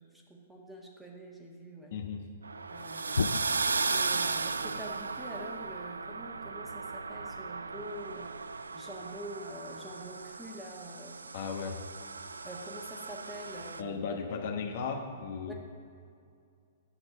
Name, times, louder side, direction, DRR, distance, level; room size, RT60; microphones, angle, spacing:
voice 1, 0.0-2.0 2.7-3.2 3.9-8.4 8.7-11.2 12.4-14.2 15.4-15.5, right 1 dB, 5° right, -1 dB, 1.5 m, -46 dB
voice 2, 1.9-2.2 11.3-11.8 13.8-15.5, left 5 dB, 60° left, 4 dB, 1.1 m, -35 dB
sound 1, 2.4-13.8, right 4 dB, 90° right, 0.3 m, -36 dB
sound 2, 2.7-8.4 10.5-11.0 11.5-11.6 12.3-12.6, left 5 dB, 85° left, 0.3 m, -40 dB
10.0 x 6.2 x 7.3 m, 2.4 s
hypercardioid pair, 120°, 0 cm